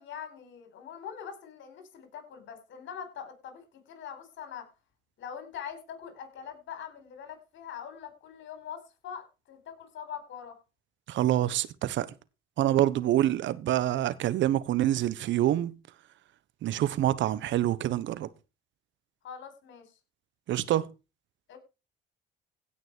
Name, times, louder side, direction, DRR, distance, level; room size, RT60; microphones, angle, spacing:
voice 1, 0.0-4.7 5.2-10.6 19.2-19.9 21.5-21.6, left 8 dB, 65° left, 4.5 m, -43 dB
voice 2, 11.1-12.1 12.6-15.8 16.6-18.3 20.5-20.9, right 13 dB, 65° right, 1.2 m, -26 dB
17.0 x 6.1 x 4.6 m
supercardioid pair, 75°, 20 cm